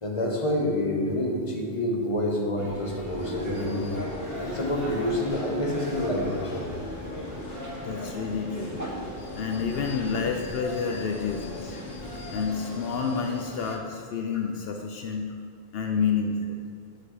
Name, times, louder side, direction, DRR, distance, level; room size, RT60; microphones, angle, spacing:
voice 1, 0.0-3.9 4.4-6.6 10.9-11.0, left 1 dB, 30° left, 0 dB, 1.1 m, -28 dB
sound 1, 2.6-12.5, equal, 20° right, 1.2 m, -38 dB
sound 2, 3.2-13.8, left 3 dB, 55° left, 1.2 m, -40 dB
voice 2, 7.8-8.8 9.3-11.7 12.3-15.3 15.7-16.6, left 5 dB, 75° left, 3 dB, 0.8 m, -29 dB
7.5 x 4.2 x 6.4 m, 2.2 s
omnidirectional pair, 1.1 m